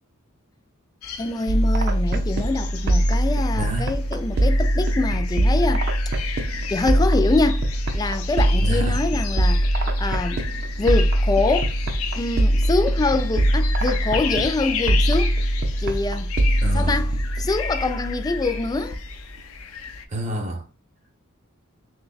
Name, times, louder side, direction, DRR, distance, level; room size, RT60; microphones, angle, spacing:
sound 1, 1.0-20.1, left 7 dB, 75° left, 0.6 m, -34 dB
voice 1, 1.2-5.9 6.7-7.7 7.9-9.7 10.0-10.4 10.8-11.7 12.2-15.4 15.8-16.3 16.7-17.1 17.4-19.0, left 3 dB, 20° left, 0.3 m, -25 dB
sound 2, 1.5-19.1, right 1 dB, 50° right, 0.6 m, -22 dB
voice 2, 3.5-3.9 8.6-9.0 16.6-17.1 20.1-20.7, right 1 dB, 35° right, 1.0 m, -28 dB
6.5 x 2.2 x 2.3 m
head